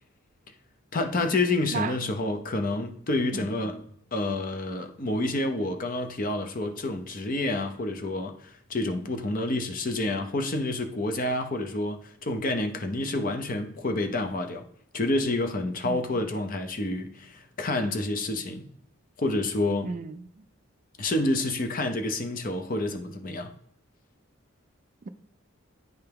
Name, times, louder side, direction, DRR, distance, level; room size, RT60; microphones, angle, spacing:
voice 1, 0.9-3.8 4.1-14.6 14.9-18.7 19.2-19.9 21.0-23.5, left 2 dB, 40° left, 0.7 m, -28 dB
voice 2, 15.8-16.2 19.8-20.4, right 4 dB, 40° right, 0.3 m, -34 dB
9.4 x 3.4 x 3.4 m
head